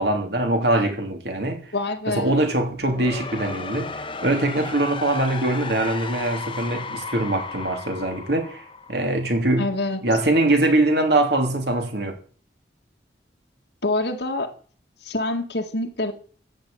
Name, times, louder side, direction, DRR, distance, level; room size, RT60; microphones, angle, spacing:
voice 1, 0.0-1.7 2.1-9.7 10.0-12.2, right 1 dB, 65° right, 3.1 m, -23 dB
voice 2, 1.7-2.4 9.6-10.0 13.8-14.5 15.0-16.1, left 2 dB, 70° left, 2.0 m, -26 dB
sound 1, 2.7-9.6, left 4 dB, 30° left, 1.1 m, -35 dB
14.5 x 6.7 x 8.7 m
head